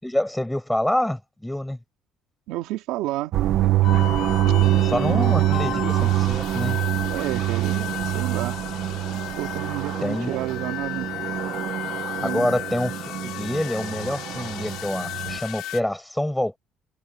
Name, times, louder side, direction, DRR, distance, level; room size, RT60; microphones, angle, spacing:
voice 1, 0.0-1.8 4.8-6.8 10.0-10.4 12.2-12.9 13.2-16.6, left 1 dB, 5° left, 6.2 m, -26 dB
voice 2, 2.5-3.3 4.9-5.6 7.0-8.6 9.4-11.1 12.2-12.6, right 16 dB, 90° right, 2.7 m, -31 dB
sound 1, 3.3-15.4, right 14 dB, 55° right, 1.0 m, -25 dB
sound 2, 3.8-15.8, left 15 dB, 65° left, 6.6 m, -34 dB
cardioid pair, 170°, 0 cm